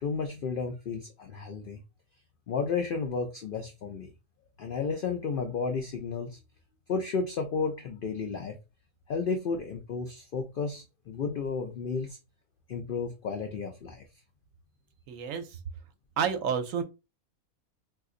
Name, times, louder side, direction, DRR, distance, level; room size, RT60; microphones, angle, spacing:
voice 1, 0.0-1.8 2.5-4.1 4.6-6.4 6.9-8.5 9.1-12.2 12.7-14.0, left 5 dB, 75° left, 0.5 m, -32 dB
voice 2, 15.1-15.5 16.2-16.8, right 7 dB, 75° right, 0.9 m, -29 dB
2.5 x 2.4 x 3.7 m
omnidirectional pair, 1.4 m